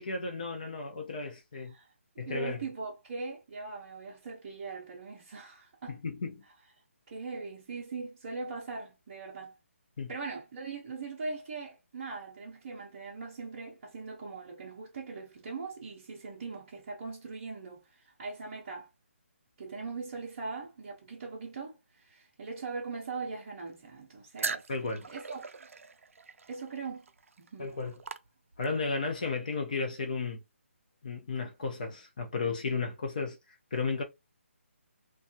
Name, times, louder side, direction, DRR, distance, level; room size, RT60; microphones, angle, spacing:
voice 1, 0.0-1.7 2.2-2.6 5.9-6.4 10.0-10.1 24.7-25.1 27.6-28.0 28.6-30.4 31.0-33.4 33.7-34.0, left 4 dB, 35° left, 0.6 m, -34 dB
voice 2, 2.2-6.0 7.1-9.5 10.1-17.8 18.2-18.9 19.6-21.8 22.0-24.7 25.1-25.5 26.5-27.1 27.4-27.7, right 4 dB, 30° right, 0.7 m, -40 dB
sound 1, 24.4-28.9, right 5 dB, 75° right, 0.4 m, -41 dB
2.6 x 2.3 x 2.6 m
hypercardioid pair, 170°, 7 cm